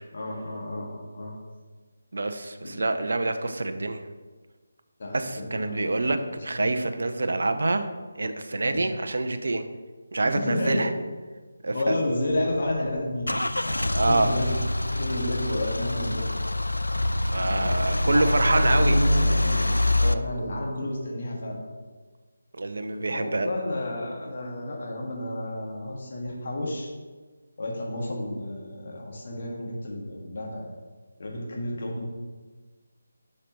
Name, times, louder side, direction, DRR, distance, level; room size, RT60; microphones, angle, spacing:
voice 1, 0.1-1.3 2.6-2.8 5.0-6.1 6.5-6.7 8.7-8.8 10.3-10.8 11.7-13.3 13.6-14.5 14.9-16.3 18.0-19.8 20.0-21.6 23.1-26.9 27.6-30.7 31.2-32.1, left 1 dB, 45° left, -2 dB, 1.8 m, -31 dB
voice 2, 2.1-4.0 5.1-7.9 8.1-9.6 10.1-10.9 11.6-11.9 13.9-14.3 17.2-19.0 20.0-20.2 22.5-23.5, right 2 dB, 55° right, 8 dB, 0.7 m, -26 dB
Car / Engine starting / Idling, 12.3-20.1, left 1 dB, 75° left, 0.4 m, -25 dB
9.9 x 6.5 x 3.1 m, 1.4 s
figure-of-eight pair, 155°, 0 cm